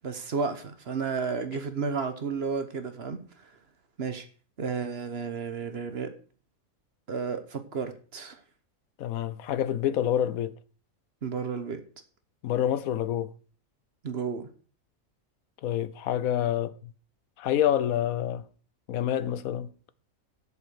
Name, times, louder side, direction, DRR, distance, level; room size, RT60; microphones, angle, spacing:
voice 1, 0.0-3.2 4.0-4.2 4.6-6.1 7.1-8.4 11.2-11.8 14.0-14.5, right 5 dB, 50° right, 1.2 m, -32 dB
voice 2, 9.0-10.5 12.4-13.3 15.6-16.9 17.4-18.4 18.9-19.7, left 10 dB, 80° left, 1.1 m, -27 dB
8.0 x 6.9 x 6.4 m
omnidirectional pair, 1.5 m